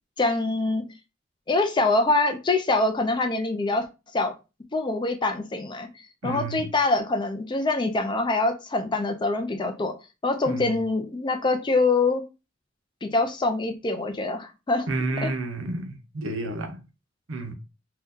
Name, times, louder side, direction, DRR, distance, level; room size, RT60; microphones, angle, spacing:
voice 1, 0.2-0.8 1.5-3.9 4.1-4.3 4.7-5.9 6.2-9.9 10.2-12.2 13.0-14.9 15.2-15.3, left 2 dB, 25° left, 0.4 m, -24 dB
voice 2, 6.2-6.7 10.4-10.8 14.9-16.8 17.3-17.5, right 2 dB, 75° right, 0.7 m, -31 dB
2.7 x 2.2 x 3.6 m
head